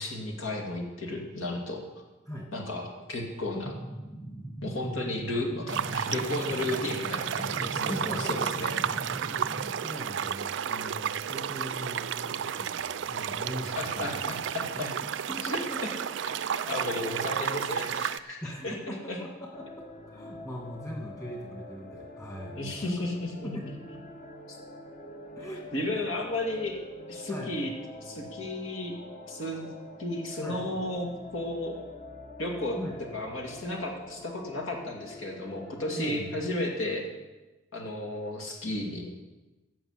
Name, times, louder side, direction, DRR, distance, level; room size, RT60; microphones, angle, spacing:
voice 1, 0.0-1.8 2.5-3.8 4.6-8.7 13.8-14.9 15.4-15.6 16.2-19.2 22.6-23.6 25.7-26.8 27.1-27.7 28.0-28.9 29.3-29.7 30.0-31.8 32.4-32.8 33.1-37.1 37.7-39.1, left 1 dB, 85° left, 1 dB, 2.3 m, -33 dB
sound 1, 3.6-9.7, right 1 dB, ahead, 0.6 m, -40 dB
sound 2, 5.7-18.2, right 8 dB, 65° right, 0.4 m, -32 dB
voice 2, 7.8-8.5 9.2-14.5 14.7-14.9 15.3-16.0 17.0-17.1 18.4-22.9 23.4-23.7 25.4-25.7 27.3-27.6 30.4-30.6 32.8-33.0 36.0-36.3, equal, 15° left, -1 dB, 2.2 m, -40 dB
sound 3, 19.5-36.5, left 1 dB, 40° left, 1.1 m, -46 dB
15.5 x 5.9 x 8.0 m, 1.1 s
head